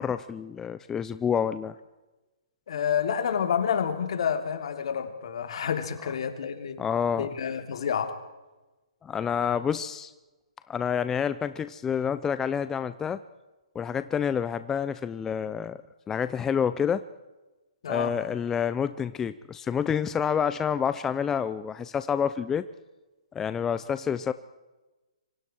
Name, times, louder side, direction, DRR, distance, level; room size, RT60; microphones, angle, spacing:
voice 1, 0.0-1.7 6.8-7.3 9.0-10.1 10.7-13.2 13.7-15.8 16.1-17.0 17.9-22.7 23.3-24.3, left 7 dB, 15° left, 12 dB, 0.6 m, -28 dB
voice 2, 2.7-6.8 7.2-8.1 9.4-9.5 17.8-18.1, left 7 dB, 60° left, 7 dB, 3.3 m, -29 dB
27.0 x 25.0 x 4.6 m, 1.1 s
hypercardioid pair, 140°, 3 cm